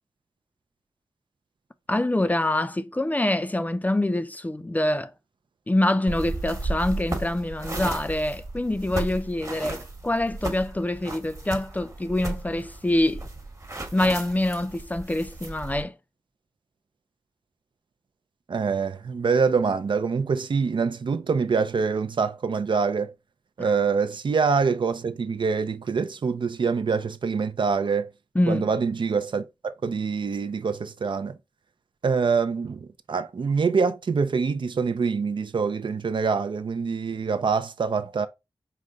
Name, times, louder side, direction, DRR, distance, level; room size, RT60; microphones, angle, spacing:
voice 1, 1.9-5.1 5.7-13.3 13.9-15.9 23.6-23.7 28.4-28.7, left 1 dB, 15° left, 0.5 m, -25 dB
sound 1, 6.1-15.8, right 2 dB, 35° right, 1.2 m, -34 dB
voice 2, 18.5-23.1 23.6-28.1 28.5-31.4 32.0-38.3, right 5 dB, 60° right, 0.4 m, -25 dB
4.9 x 2.2 x 3.8 m
wide cardioid pair, 65°, 9 cm